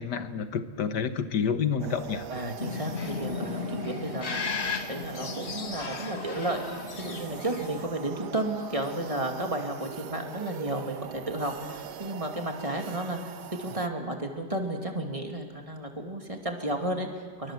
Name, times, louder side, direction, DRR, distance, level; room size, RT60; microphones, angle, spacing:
voice 1, 0.0-2.3, left 6 dB, 80° left, 10 dB, 1.8 m, -29 dB
sound 1, 1.8-13.9, right 9 dB, 80° right, 1.5 m, -42 dB
voice 2, 2.3-6.6 7.0-17.5, right 1 dB, 20° right, 3 dB, 2.7 m, -33 dB
sound 2, 2.6-7.9, left 6 dB, 40° left, 1.6 m, -35 dB
28.0 x 23.5 x 7.6 m, 1.5 s
omnidirectional pair, 1.8 m